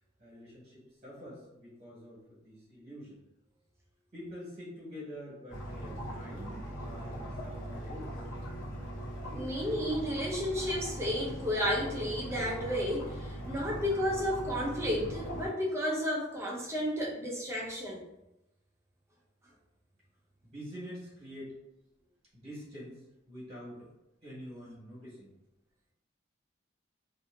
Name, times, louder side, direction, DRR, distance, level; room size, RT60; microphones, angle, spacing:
voice 1, 0.2-3.2 4.1-8.1 20.4-21.6 22.3-23.9 24.2-25.3, equal, 35° right, -6 dB, 1.2 m, -46 dB
sound 1, 5.5-15.5, right 1 dB, 90° left, 0.9 m, -40 dB
voice 2, 9.3-18.0, equal, 15° right, -3 dB, 0.4 m, -32 dB
2.7 x 2.5 x 2.5 m, 0.89 s
head